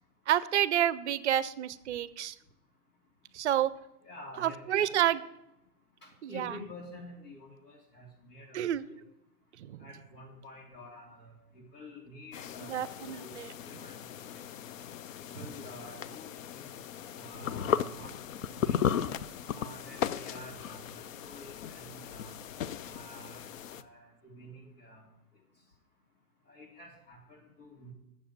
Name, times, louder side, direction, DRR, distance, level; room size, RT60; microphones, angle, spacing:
voice 1, 0.3-2.3 3.3-3.7 4.4-5.2 6.2-6.5 8.5-8.9 9.7-9.8 12.7-13.5, right 11 dB, 50° right, 17 dB, 0.5 m, -29 dB
voice 2, 4.0-5.2 6.0-8.6 8.9-9.0 9.8-14.0 14.3-14.4 15.2-16.8 17.1-18.8 19.5-22.3 22.8-25.1 26.5-27.9, left 1 dB, 80° left, 0 dB, 3.1 m, -49 dB
sound 1, 12.3-23.8, left 9 dB, 60° left, 0.5 m, -36 dB
7.3 x 6.4 x 7.0 m, 0.85 s
hypercardioid pair, 145°, 46 cm